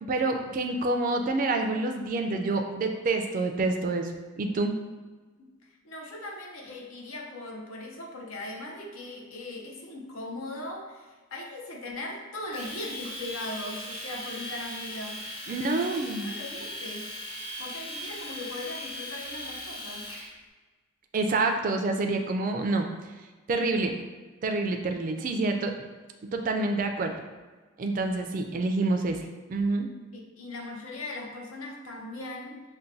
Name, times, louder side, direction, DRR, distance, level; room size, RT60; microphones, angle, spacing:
voice 1, 0.0-4.7 15.5-16.3 21.1-22.9 23.5-23.9 24.4-25.7 26.3-27.1 27.8-29.2 29.5-29.9, right 2 dB, 40° right, 5 dB, 0.3 m, -27 dB
voice 2, 5.8-16.0 16.2-17.1 17.6-20.1 30.1-32.6, left 2 dB, 80° left, 0 dB, 0.7 m, -39 dB
Domestic sounds home sounds, 12.5-20.3, left 1 dB, 25° left, 0.6 m, -39 dB
5.6 x 2.2 x 2.6 m, 1.4 s
head